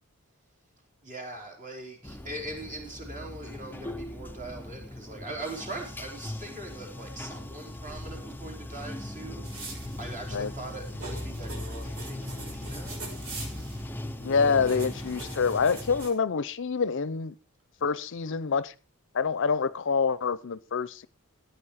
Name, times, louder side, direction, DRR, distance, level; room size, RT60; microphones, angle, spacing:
voice 1, 1.0-13.0 14.3-14.6, right 2 dB, 35° right, 4.5 m, -41 dB
Bathtub (filling or washing), 2.0-16.1, left 1 dB, 10° left, 0.6 m, -39 dB
sound 1, 9.4-16.1, right 3 dB, 75° right, 6.0 m, -44 dB
voice 2, 14.2-17.3 17.8-18.7 19.1-21.1, left 5 dB, 60° left, 0.6 m, -26 dB
15.5 x 9.3 x 4.9 m
head